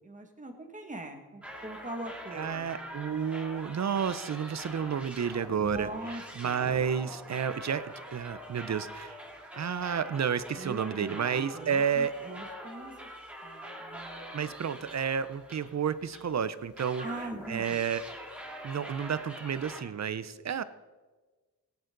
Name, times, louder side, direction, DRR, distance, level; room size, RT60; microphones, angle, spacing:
voice 1, 0.0-2.8 5.6-6.9 10.6-12.9 13.4-14.4 17.0-17.8, right 1 dB, 20° right, 3 dB, 2.0 m, -42 dB
sound 1, 1.4-16.3 16.8-19.8, equal, 5° right, 2.8 m, -44 dB
voice 2, 2.3-5.9 6.4-9.2 9.5-12.1 14.3-17.0 17.5-18.0 18.6-20.6, right 7 dB, 50° right, 14 dB, 0.7 m, -31 dB
17.5 x 9.4 x 3.9 m, 1.3 s
cardioid pair, 80°, 36 cm